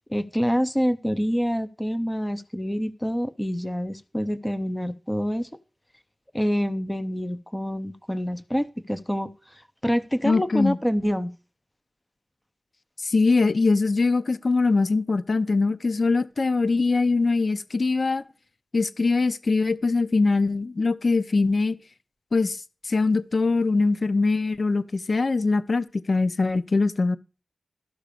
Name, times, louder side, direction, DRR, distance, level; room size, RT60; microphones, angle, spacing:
voice 1, 0.1-5.5 6.3-11.3, equal, 10° left, 0.7 m, -27 dB
voice 2, 10.2-10.8 13.0-18.2 18.7-21.8 22.3-27.2, left 3 dB, 55° left, 0.7 m, -22 dB
13.0 x 6.0 x 6.8 m
wide cardioid pair, 80°, 0 cm